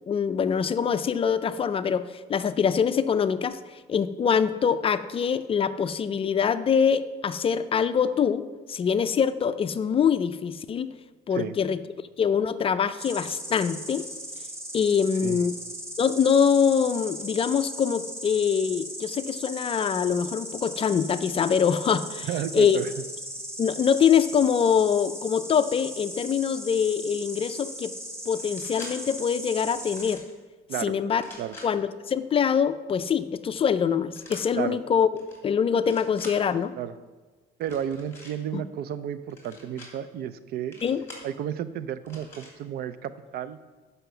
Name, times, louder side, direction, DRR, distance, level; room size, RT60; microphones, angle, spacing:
voice 1, 0.1-3.6 3.9-8.4 8.7-10.9 11.3-11.8 12.2-14.0 14.7-15.5 16.0-22.3 22.5-22.8 23.6-27.9 28.3-30.2 30.8-31.2 31.6-35.1 35.4-36.7 38.5-38.6 40.8-41.0, left 7 dB, 35° left, 12 dB, 0.4 m, -24 dB
Insect, 13.0-30.2, equal, 15° right, 1.6 m, -38 dB
voice 2, 22.2-22.9 30.7-30.9 31.4-31.6 34.5-34.8 36.7-36.9 37.6-40.8 41.2-43.6, right 9 dB, 65° right, 14 dB, 0.5 m, -32 dB
sound 1, 28.3-28.9 29.7-30.3 31.1-31.7 34.1-34.4 35.1-35.4 35.7-36.3 37.6-38.3 39.3-39.9 40.7-41.3 42.0-42.5, left 2 dB, 15° left, 2.9 m, -45 dB
7.7 x 5.6 x 6.9 m, 1.3 s
cardioid pair, 110°, 17 cm